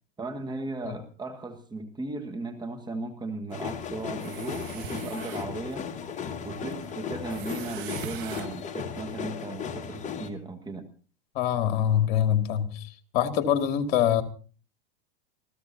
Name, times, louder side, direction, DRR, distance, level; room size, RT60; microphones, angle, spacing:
voice 1, 0.2-5.9 6.4-10.9, right 2 dB, 15° right, 1.7 m, -36 dB
sound 1, 3.5-10.3, left 7 dB, 25° left, 2.2 m, -36 dB
sound 2, 3.5-8.7, right 12 dB, 60° right, 1.8 m, -44 dB
voice 2, 11.3-12.9 13.1-14.2, left 10 dB, 55° left, 2.3 m, -24 dB
26.5 x 16.0 x 2.8 m
hypercardioid pair, 110°, 30 cm